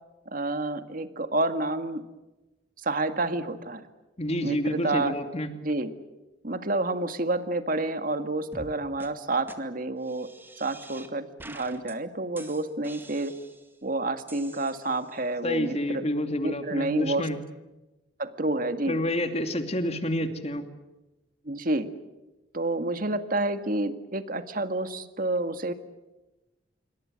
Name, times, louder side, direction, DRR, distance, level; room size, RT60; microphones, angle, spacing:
voice 1, 0.3-2.0 2.8-3.9 4.4-5.2 5.6-5.9 6.4-10.3 10.6-13.3 13.8-16.0 16.4-17.3 18.2-19.0 21.5-21.9 22.5-25.7, right 2 dB, 50° right, 9 dB, 2.0 m, -29 dB
voice 2, 4.2-5.5 15.4-17.4 18.9-20.6, left 1 dB, 35° left, 7 dB, 2.6 m, -28 dB
sound 1, 8.5-8.7 9.0-9.1 9.5-9.6 10.0-11.1 11.4-11.9 12.4-13.8 14.3-15.2, right 2 dB, 10° right, 2.1 m, -47 dB
27.0 x 24.0 x 7.8 m, 1.1 s
head